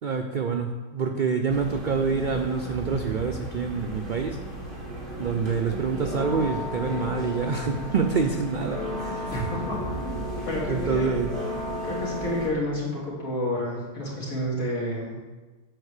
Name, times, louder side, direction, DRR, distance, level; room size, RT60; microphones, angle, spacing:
voice 1, 0.0-4.4 5.2-9.3 10.5-11.3, right 5 dB, 70° right, 4 dB, 0.4 m, -27 dB
sound 1, 1.5-12.5, equal, 35° right, 1.9 m, -34 dB
voice 2, 9.3-11.2 11.8-15.2, left 1 dB, 70° left, -5 dB, 2.9 m, -30 dB
7.9 x 4.9 x 6.5 m, 1.2 s
omnidirectional pair, 1.5 m